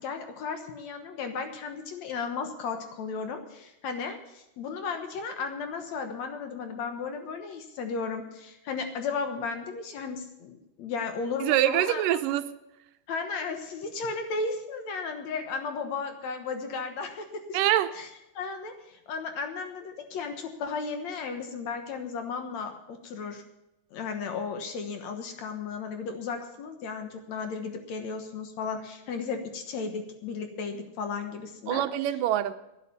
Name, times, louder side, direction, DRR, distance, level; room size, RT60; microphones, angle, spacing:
voice 1, 0.0-12.0 13.1-17.6 17.9-18.1 18.3-23.4 23.9-31.8, left 5 dB, 60° left, 6 dB, 2.2 m, -35 dB
voice 2, 11.4-12.4 17.5-17.9 31.7-32.5, right 12 dB, 85° right, 11 dB, 2.3 m, -24 dB
12.0 x 9.9 x 7.0 m, 0.91 s
omnidirectional pair, 3.9 m